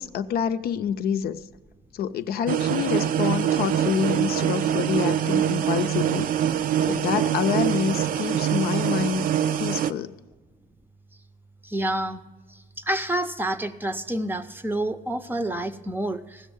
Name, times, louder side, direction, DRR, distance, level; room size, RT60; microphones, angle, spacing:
voice 1, 0.0-1.4 1.9-6.3 6.9-9.3 9.6-10.2, left 8 dB, 65° left, 0.6 m, -27 dB
sound 1, 2.5-9.9, right 10 dB, 55° right, 0.5 m, -24 dB
voice 2, 11.6-12.2 12.8-16.5, right 1 dB, 10° right, 0.6 m, -28 dB
15.5 x 6.4 x 7.1 m
cardioid pair, 110°, 17 cm